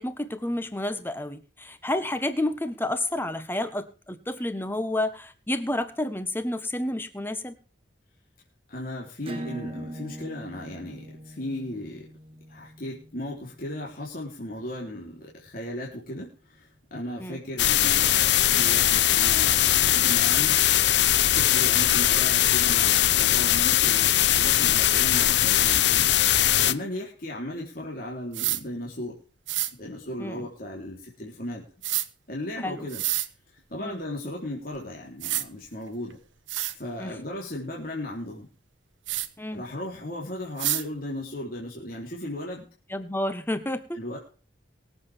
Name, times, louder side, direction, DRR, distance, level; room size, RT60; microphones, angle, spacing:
voice 1, 0.0-7.5 17.2-17.4 30.2-30.4 32.6-32.9 33.8-34.0 37.0-37.2 39.4-39.6 42.9-44.0, left 1 dB, 10° left, 10 dB, 1.3 m, -30 dB
voice 2, 8.7-12.1 12.5-21.0 21.3-29.2 29.7-31.6 32.3-33.0 33.7-36.2 36.7-38.5 39.5-42.7 43.9-44.2, left 1 dB, 50° left, -3 dB, 3.6 m, -36 dB
Acoustic guitar / Strum, 9.2-14.5, right 1 dB, 30° right, 1.6 m, -41 dB
sound 1, 17.6-26.7, left 12 dB, 65° left, 0.8 m, -21 dB
sound 2, 28.3-28.6 29.5-29.7 31.8-32.1 32.9-33.3 34.7-34.8 35.2-35.4 36.1-36.2 36.5-36.7 39.1-39.3 40.6-40.8, right 15 dB, 85° right, 1.1 m, -27 dB
23.0 x 8.0 x 3.5 m, 0.38 s
head